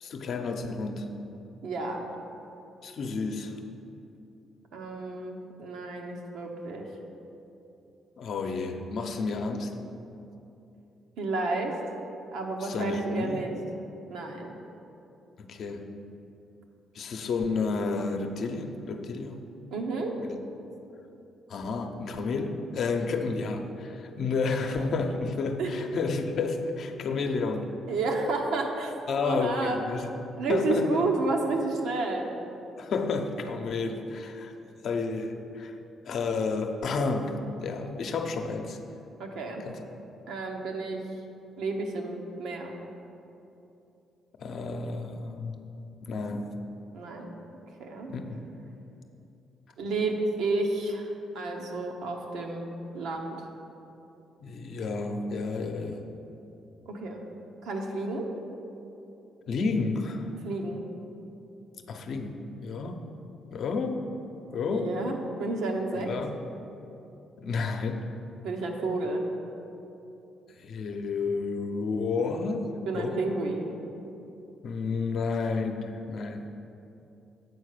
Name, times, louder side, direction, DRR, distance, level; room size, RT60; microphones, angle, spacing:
voice 1, 0.0-1.1 2.8-3.5 8.2-9.7 12.6-13.4 15.4-15.8 16.9-19.4 20.2-20.4 21.5-27.7 29.1-30.2 30.5-31.0 32.8-34.5 34.8-35.7 36.0-38.8 39.6-39.8 44.4-45.6 46.0-46.6 48.1-48.4 54.4-56.0 59.5-60.3 61.9-63.0 63.5-64.0 64.5-64.9 66.0-66.3 67.4-68.0 70.6-73.2 74.6-76.5, left 4 dB, 65° left, 5 dB, 0.7 m, -31 dB
voice 2, 1.6-2.0 4.7-6.9 11.2-11.7 12.3-13.6 14.1-14.6 19.7-20.2 25.6-25.7 27.9-28.9 29.2-29.8 30.4-32.3 39.2-39.6 40.3-41.0 41.6-42.7 46.9-47.3 47.8-48.1 49.8-53.4 56.9-57.2 57.6-58.3 60.4-60.8 64.7-66.1 68.4-69.2 72.9-73.8, right 3 dB, 85° right, 1 dB, 1.0 m, -31 dB
8.2 x 4.6 x 6.6 m, 2.9 s
cardioid pair, 90°, 0 cm